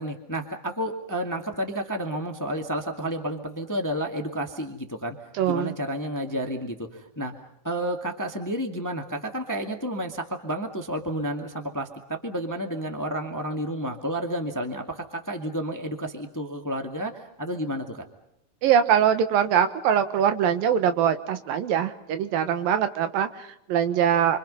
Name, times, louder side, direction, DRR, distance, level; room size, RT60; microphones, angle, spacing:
voice 1, 0.0-5.1 5.4-7.3 7.6-18.1, right 1 dB, 10° left, 4 dB, 1.3 m, -31 dB
voice 2, 5.4-5.7 18.6-24.4, right 9 dB, 85° right, 10 dB, 3.1 m, -23 dB
28.5 x 25.0 x 5.6 m, 0.76 s
omnidirectional pair, 4.0 m